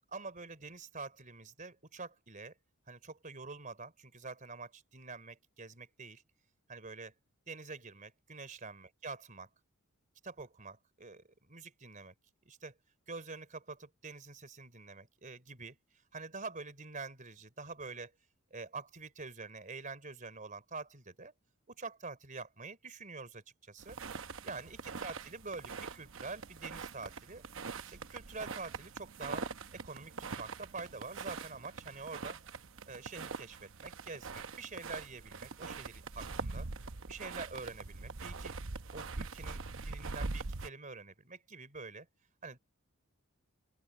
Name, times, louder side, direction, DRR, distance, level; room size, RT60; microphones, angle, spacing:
voice 1, 0.1-2.6 2.9-6.2 6.7-7.1 7.5-9.5 10.2-12.2 12.5-12.7 13.1-18.1 18.5-21.3 21.7-27.5 27.8-32.4 32.9-36.7 37.1-38.5 38.9-42.1 42.4-42.6, right 4 dB, 35° right, 3.5 m, -46 dB
sound 1, 23.8-40.7, right 4 dB, 65° right, 0.9 m, -43 dB
open air
head